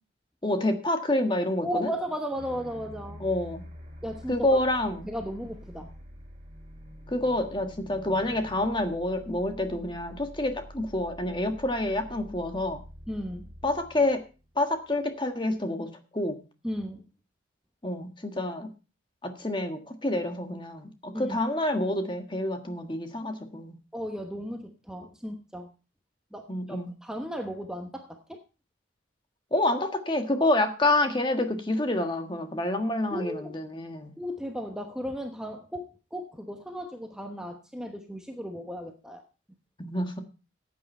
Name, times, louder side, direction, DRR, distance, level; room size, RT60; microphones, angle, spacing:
voice 1, 0.4-1.9 3.2-3.6 4.3-5.1 7.1-12.8 13.6-14.2 14.6-16.4 17.8-18.7 19.2-23.7 26.5-26.9 29.5-34.1 39.8-40.2, left 1 dB, 25° left, 6 dB, 1.4 m, -28 dB
voice 2, 1.6-3.3 4.0-4.6 5.0-5.9 13.1-13.5 16.6-17.1 21.1-21.4 23.9-25.7 26.3-28.4 33.1-33.5 34.2-39.2, equal, 5° right, 4 dB, 1.0 m, -35 dB
sound 1, 2.4-15.1, equal, 30° right, 3.3 m, -47 dB
14.5 x 8.8 x 4.3 m, 0.33 s
head